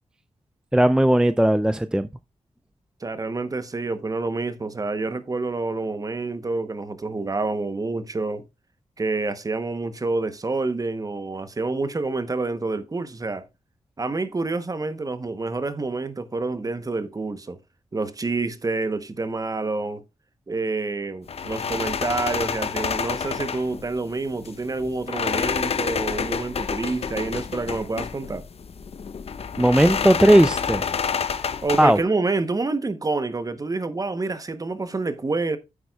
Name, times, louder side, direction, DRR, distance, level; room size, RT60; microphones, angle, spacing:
voice 1, 0.7-2.1 29.6-30.8 31.3-31.4 31.8-32.0, right 1 dB, 5° right, 0.4 m, -17 dB
voice 2, 3.0-8.5 9.0-13.5 14.0-17.6 17.9-20.0 20.5-28.5 31.6-35.6, right 3 dB, 30° right, 0.9 m, -28 dB
sound 1, 21.3-32.0, left 6 dB, 60° left, 0.7 m, -29 dB
9.4 x 8.3 x 2.3 m
wide cardioid pair, 105°, 12 cm